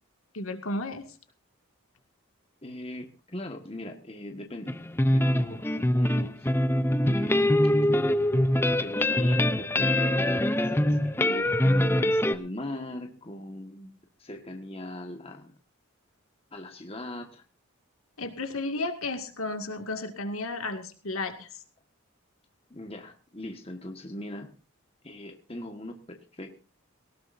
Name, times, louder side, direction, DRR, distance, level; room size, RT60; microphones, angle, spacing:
voice 1, 0.3-1.1 18.2-21.6, left 2 dB, 75° left, 6 dB, 2.1 m, -33 dB
voice 2, 2.6-4.7 5.1-6.5 7.1-7.9 8.8-15.5 16.5-17.4 22.7-24.5 25.0-26.5, left 1 dB, 25° left, 4 dB, 1.6 m, -40 dB
sound 1, 4.7-12.3, left 1 dB, 10° left, 0.6 m, -24 dB
18.5 x 18.0 x 2.7 m, 0.34 s
head